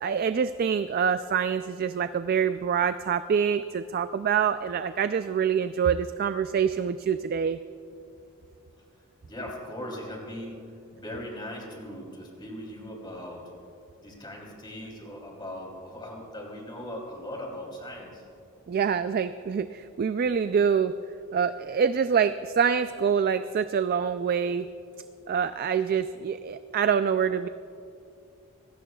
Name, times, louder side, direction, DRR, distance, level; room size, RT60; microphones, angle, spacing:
voice 1, 0.0-7.6 18.7-20.9 21.3-24.7 25.3-27.5, right 7 dB, 45° right, 11 dB, 0.3 m, -25 dB
voice 2, 9.2-13.5 14.0-18.2, left 1 dB, 20° left, -1 dB, 3.1 m, -39 dB
25.0 x 17.5 x 2.3 m, 2.5 s
head